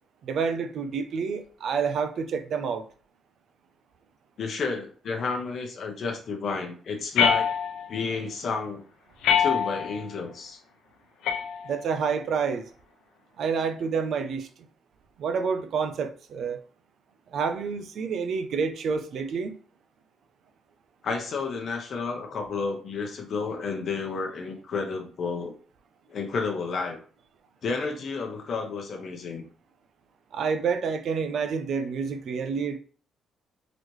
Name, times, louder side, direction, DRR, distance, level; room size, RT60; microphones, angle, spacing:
voice 1, 0.2-2.9 11.6-12.7 13.4-14.5 15.2-16.6 17.3-19.6 30.3-32.8, right 5 dB, 65° right, 0.6 m, -28 dB
voice 2, 4.4-7.5 7.9-8.8 9.4-10.6 21.0-25.5 26.1-27.0 27.6-29.4, left 4 dB, 60° left, 0.9 m, -31 dB
sound 1, 7.2-8.0 9.2-10.0 11.2-12.1, left 8 dB, 85° left, 0.6 m, -25 dB
4.0 x 3.1 x 3.2 m
cardioid pair, 90°, 0 cm